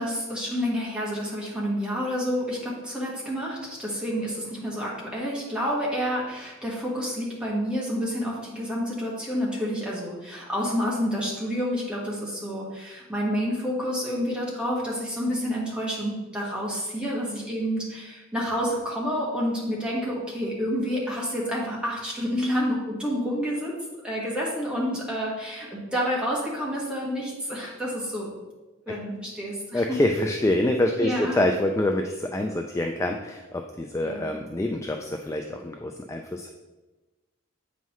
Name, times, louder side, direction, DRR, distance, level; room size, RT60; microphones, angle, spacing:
voice 1, 0.0-23.8 24.0-28.3 28.9-29.8 31.0-31.4 34.0-34.4, equal, 5° right, -5 dB, 1.6 m, -29 dB
voice 2, 29.7-36.5, left 1 dB, 15° left, 3 dB, 0.3 m, -26 dB
8.1 x 5.5 x 3.1 m, 1.2 s
head